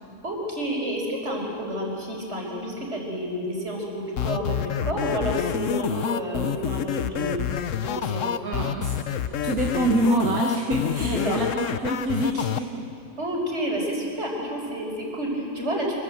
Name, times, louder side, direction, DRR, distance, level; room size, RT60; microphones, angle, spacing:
voice 1, 0.2-7.4 7.8-8.4 11.0-11.5 13.2-15.9, right 1 dB, 45° right, -1 dB, 5.4 m, -30 dB
sound 1, 4.2-12.6, left 8 dB, 60° left, 1.1 m, -27 dB
voice 2, 8.4-12.9, right 2 dB, 70° right, 0 dB, 2.1 m, -26 dB
25.5 x 24.5 x 7.9 m, 2.5 s
omnidirectional pair, 1.6 m